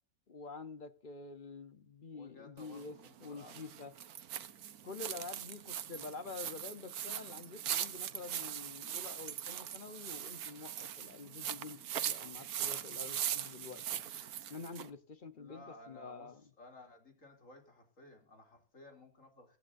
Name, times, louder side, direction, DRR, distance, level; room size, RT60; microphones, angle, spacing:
voice 1, 0.3-3.9 4.8-14.1 14.5-16.4, left 4 dB, 40° left, 0.9 m, -48 dB
voice 2, 2.1-3.7 15.3-19.6, left 2 dB, 55° left, 3.3 m, -56 dB
sound 1, 2.6-14.9, right 10 dB, 75° right, 1.4 m, -41 dB
23.5 x 10.0 x 2.6 m
omnidirectional pair, 1.6 m